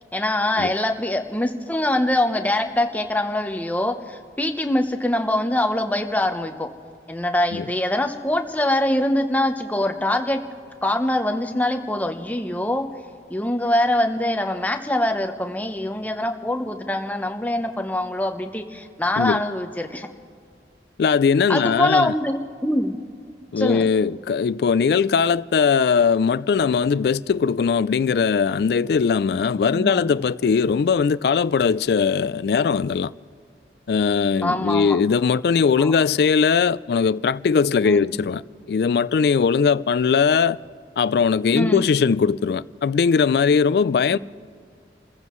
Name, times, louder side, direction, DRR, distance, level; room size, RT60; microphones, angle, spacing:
voice 1, 0.1-6.7 7.1-10.4 10.8-12.9 13.3-20.1 21.5-23.0 23.6-23.8 29.7-30.1 34.4-35.0 35.8-35.9 37.8-38.1 41.5-41.8 44.1-44.2, left 1 dB, 10° left, 0.8 m, -23 dB
voice 2, 21.0-22.1 23.5-33.1 33.9-38.4 38.7-40.6 41.0-44.2, left 6 dB, 60° left, 0.3 m, -20 dB
29.0 x 15.0 x 3.1 m
head